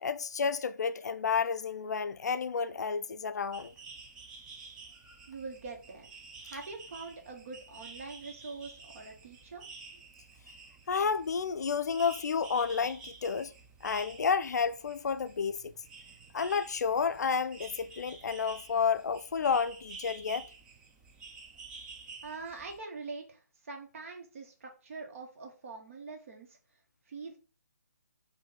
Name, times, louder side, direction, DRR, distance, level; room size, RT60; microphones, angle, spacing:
voice 1, 0.0-3.7 10.9-13.5 13.8-15.7 16.3-20.5, left 6 dB, 70° left, 0.3 m, -31 dB
sound 1, 3.5-22.8, right 4 dB, 10° right, 0.3 m, -50 dB
voice 2, 5.3-6.2 6.4-9.6 9.9-10.0 22.2-26.6 27.1-27.4, right 4 dB, 50° right, 1.3 m, -44 dB
4.4 x 2.6 x 3.9 m
hypercardioid pair, 155°, 10 cm